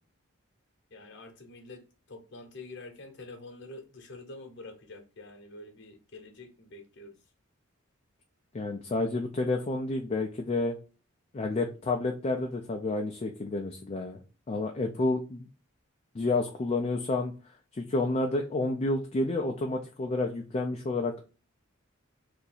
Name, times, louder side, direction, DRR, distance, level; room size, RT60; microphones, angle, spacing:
voice 1, 0.9-7.1, left 2 dB, 55° left, 0.9 m, -47 dB
voice 2, 8.5-10.8 11.3-14.2 14.5-15.5 16.1-17.3 17.7-21.2, left 2 dB, 30° left, 0.4 m, -30 dB
2.8 x 2.5 x 3.9 m
head